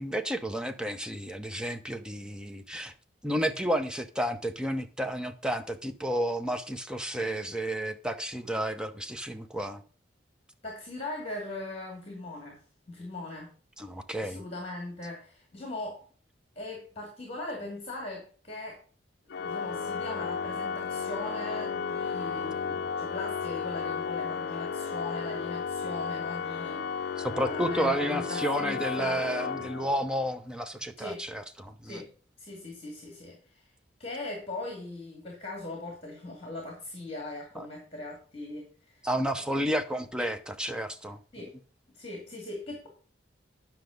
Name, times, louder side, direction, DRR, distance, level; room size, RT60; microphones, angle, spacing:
voice 1, 0.0-2.9 3.2-9.8 13.8-14.4 27.2-32.0 37.6-37.7 39.0-41.2, equal, 5° right, 0.7 m, -31 dB
voice 2, 10.6-12.6 12.9-13.5 14.2-16.0 16.6-18.8 19.4-27.1 27.4-29.2 31.0-31.2 31.8-32.1 32.4-33.6 34.0-39.1 41.3-41.5 41.9-42.9, left 2 dB, 30° left, 2.4 m, -40 dB
Organ, 19.3-30.2, left 5 dB, 55° left, 0.5 m, -33 dB
9.9 x 5.9 x 5.1 m
head